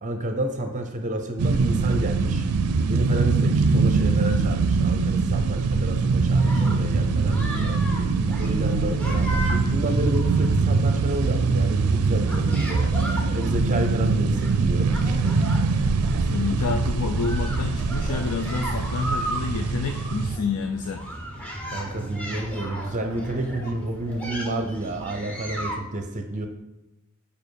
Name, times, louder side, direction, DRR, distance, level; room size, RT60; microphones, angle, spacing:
voice 1, 0.0-2.5 2.9-7.8 8.1-12.9 13.3-14.9 21.7-26.5, right 1 dB, 35° right, 5 dB, 0.6 m, -30 dB
sound 1, 1.4-20.4, right 4 dB, 75° right, 0.4 m, -23 dB
sound 2, 6.4-25.8, equal, 5° left, 0.9 m, -36 dB
voice 2, 16.2-21.0, left 4 dB, 90° left, 6 dB, 0.4 m, -29 dB
5.1 x 5.0 x 4.6 m, 0.95 s
head